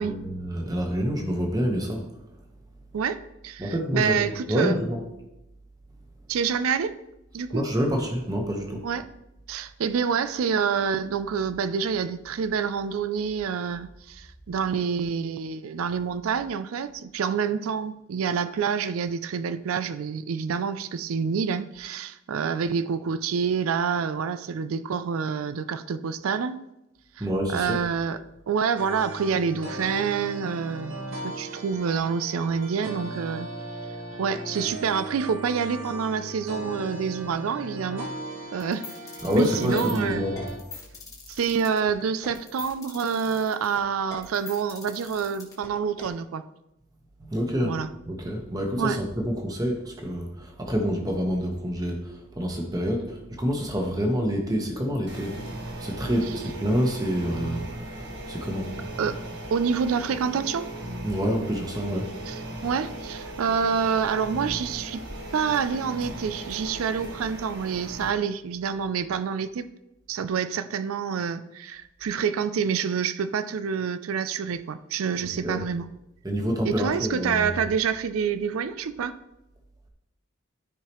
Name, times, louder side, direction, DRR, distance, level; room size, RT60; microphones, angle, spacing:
voice 1, 0.0-2.1 3.6-5.1 7.5-8.8 27.2-27.8 39.2-40.5 47.2-47.8 48.1-55.3 55.8-58.0 58.3-58.7 61.0-62.1 75.2-75.7 76.2-77.6, equal, 20° right, 1 dB, 1.1 m, -27 dB
voice 2, 2.9-4.8 6.3-7.0 7.3-7.6 8.8-9.0 9.5-26.7 27.2-27.3 27.5-28.2 28.5-33.5 34.2-38.1 38.5-38.8 39.3-40.3 41.3-46.4 47.6-47.9 48.8-49.0 56.3-56.4 59.0-59.2 59.5-60.7 62.3-65.0 65.3-69.7 70.1-75.9 76.6-79.2, right 6 dB, 90° right, 12 dB, 0.4 m, -27 dB
sound 1, 28.8-40.6, right 1 dB, 75° right, 1.5 m, -37 dB
sound 2, 38.6-46.1, left 4 dB, 15° left, 1.4 m, -43 dB
sound 3, 55.1-68.1, right 1 dB, 55° right, 1.4 m, -37 dB
13.0 x 4.8 x 3.0 m, 0.91 s
head